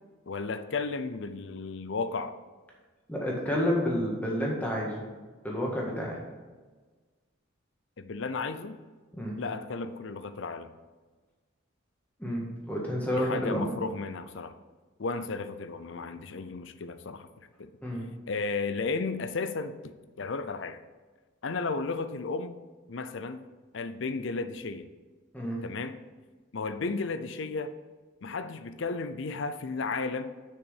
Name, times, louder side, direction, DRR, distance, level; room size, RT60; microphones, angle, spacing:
voice 1, 0.3-2.3 8.0-8.8 9.4-10.7 13.2-14.5 15.0-17.3 17.6-17.7 18.3-19.9 20.2-20.8 21.4-22.6 22.9-23.4 23.7-24.9 25.6-26.0 26.5-27.7 28.2-30.4, left 4 dB, 65° left, 11 dB, 0.5 m, -34 dB
voice 2, 3.1-5.1 5.4-6.2 9.1-9.4 12.2-13.7 17.8-18.1 25.3-25.7, equal, 5° left, -3 dB, 1.7 m, -30 dB
6.8 x 6.0 x 6.4 m, 1.4 s
head